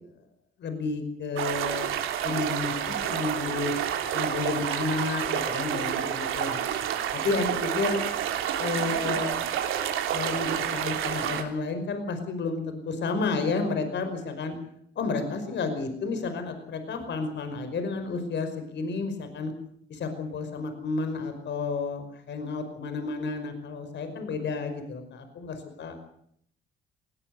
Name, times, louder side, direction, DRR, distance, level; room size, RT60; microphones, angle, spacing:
voice 1, 0.6-1.9 2.2-3.7 4.1-6.9 7.1-8.0 8.6-9.3 10.1-14.6 15.0-19.5 19.9-26.0, left 4 dB, 65° left, 8 dB, 5.4 m, -31 dB
sound 1, 1.4-11.4, right 9 dB, 90° right, 3.4 m, -29 dB
20.5 x 19.5 x 8.3 m, 0.67 s
cardioid pair, 90°, 20 cm